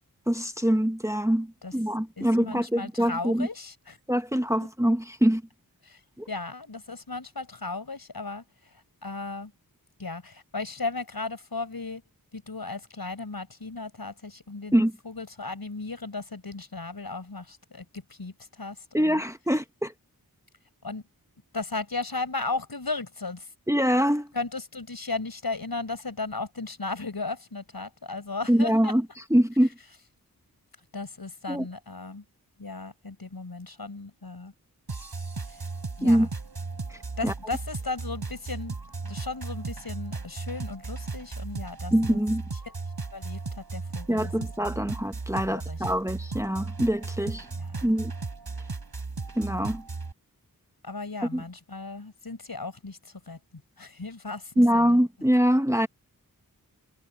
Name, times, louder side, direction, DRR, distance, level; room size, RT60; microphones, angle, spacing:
voice 1, 0.3-3.5 4.1-5.4 6.2-6.3 14.7-14.9 18.9-19.9 23.7-24.3 28.5-29.7 31.5-31.7 36.0-36.3 36.9-37.3 41.9-42.4 44.1-47.5 47.8-48.1 49.4-49.8 51.2-51.4 54.6-55.9, equal, 10° right, 1.3 m, -24 dB
voice 2, 2.2-4.0 5.9-6.0 6.3-8.4 9.0-9.5 10.0-12.0 12.3-19.2 20.8-21.0 21.5-23.5 24.3-28.9 30.9-32.2 32.6-34.5 35.5-35.6 36.0-36.3 37.2-38.7 39.0-42.2 43.1-44.3 44.6-44.7 45.4-45.8 47.5-47.9 50.8-53.0 53.3-53.4 53.8-55.0, left 3 dB, 75° left, 5.9 m, -36 dB
sound 1, 34.9-50.1, right 3 dB, 85° right, 5.4 m, -36 dB
wide cardioid pair, 60°, 37 cm